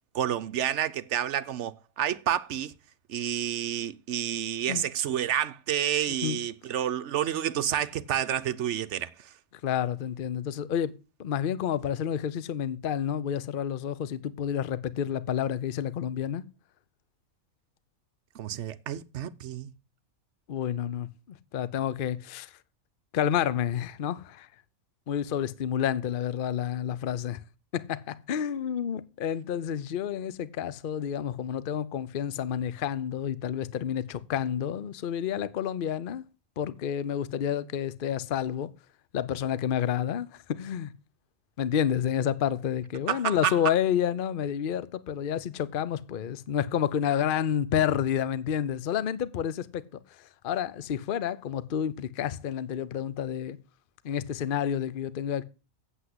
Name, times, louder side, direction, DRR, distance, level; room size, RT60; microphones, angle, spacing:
voice 1, 0.1-2.7 3.1-9.1 18.3-19.7 43.1-43.5, right 10 dB, 60° right, 0.9 m, -29 dB
voice 2, 9.6-16.4 20.5-22.5 23.1-24.5 25.1-27.4 27.7-36.2 36.6-38.7 39.1-40.9 41.6-53.6 54.0-55.5, left 9 dB, 50° left, 0.7 m, -29 dB
8.2 x 7.9 x 7.9 m
omnidirectional pair, 1.5 m